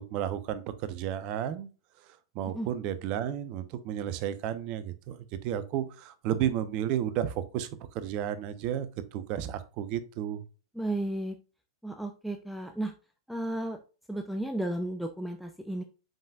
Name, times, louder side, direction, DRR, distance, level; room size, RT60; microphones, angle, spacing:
voice 1, 0.0-1.7 2.3-7.7 7.9-8.9 9.1-10.4, right 10 dB, 40° right, 12 dB, 0.9 m, -32 dB
voice 2, 10.7-11.4 11.8-12.9 13.3-13.8 14.1-15.8, right 1 dB, ahead, 5 dB, 0.8 m, -33 dB
7.6 x 5.3 x 2.4 m, 0.33 s
figure-of-eight pair, 100°, 2 cm